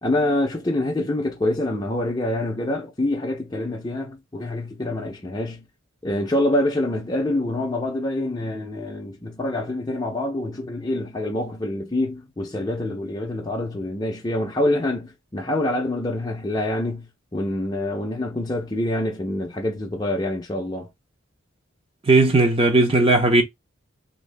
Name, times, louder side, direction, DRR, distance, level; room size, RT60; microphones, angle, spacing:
voice 1, 0.0-5.6 6.0-20.9, left 1 dB, 20° left, 0.5 m, -26 dB
voice 2, 22.1-23.4, right 2 dB, 25° right, 0.6 m, -16 dB
2.9 x 2.7 x 3.3 m
head